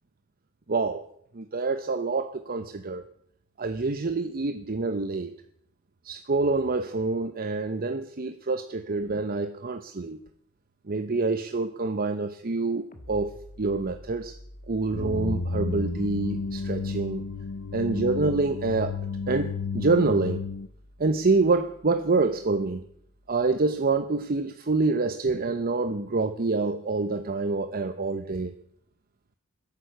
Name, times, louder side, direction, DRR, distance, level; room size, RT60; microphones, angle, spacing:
voice 1, 0.7-1.1 1.3-3.0 3.6-5.3 6.0-10.2 10.9-13.3 13.6-14.3 14.7-17.2 17.7-19.0 19.3-20.4 21.0-22.8 23.3-28.5, right 3 dB, 45° right, 9 dB, 0.8 m, -26 dB
sound 1, 12.9-24.3, equal, 40° left, 1.8 m, -50 dB
sound 2, 14.9-20.7, left 4 dB, 60° left, 0.7 m, -32 dB
13.5 x 11.0 x 8.1 m, 0.68 s
head